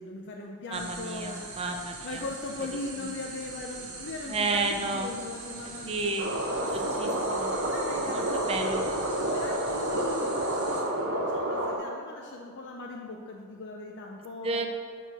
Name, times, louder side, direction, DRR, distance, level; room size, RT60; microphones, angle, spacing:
voice 1, 0.0-1.6 2.0-6.1 6.6-8.5 9.0-14.6, left 3 dB, 55° left, 0 dB, 0.5 m, -39 dB
voice 2, 0.7-2.2 4.3-5.1 5.8-6.3 6.7-7.5 8.1-8.8 14.4-14.7, right 3 dB, 25° right, 4 dB, 0.5 m, -31 dB
sound 1, 0.7-10.8, right 3 dB, 90° right, 1.1 m, -42 dB
sound 2, 6.2-11.8, right 1 dB, 55° right, 0.9 m, -29 dB
6.2 x 4.6 x 5.0 m, 2.1 s
head